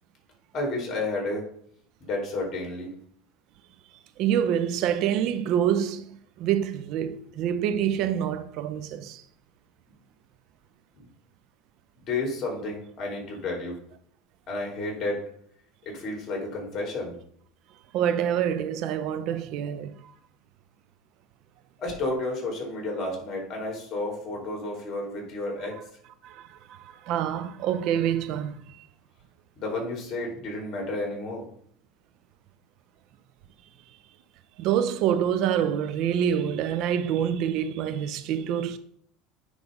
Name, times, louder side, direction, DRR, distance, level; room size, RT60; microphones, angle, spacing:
voice 1, 0.5-1.4 2.0-2.9 12.1-13.8 14.5-15.2 15.9-17.1 21.8-25.8 29.6-31.4, left 2 dB, 40° left, 3.4 m, -31 dB
voice 2, 4.2-9.2 17.9-20.1 26.2-28.6 34.6-38.8, right 9 dB, 60° right, 0.7 m, -26 dB
9.7 x 3.4 x 5.2 m
supercardioid pair, 110°, 0 cm